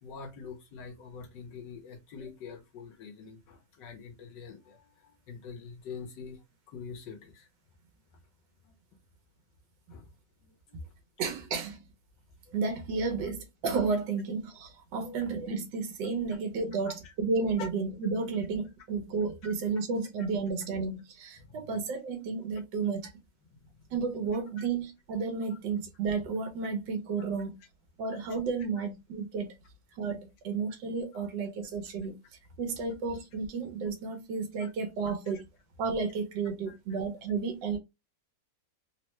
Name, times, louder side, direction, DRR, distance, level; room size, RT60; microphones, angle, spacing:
voice 1, 0.0-7.5 8.6-8.7 9.9-10.1 10.4-10.8 12.5-12.6 15.0-15.2 16.9-17.1 17.6-17.7 19.4-19.5 21.4-21.8 23.5-23.9 24.6-24.7 28.8-28.9 34.6-34.7 36.7-36.8, left 5 dB, 80° left, 1.4 m, -46 dB
voice 2, 11.2-11.8 12.5-23.1 23.9-27.6 28.0-29.5 29.9-32.2 32.6-35.5 35.8-37.8, right 4 dB, 80° right, 1.4 m, -32 dB
3.6 x 2.1 x 2.9 m
omnidirectional pair, 2.0 m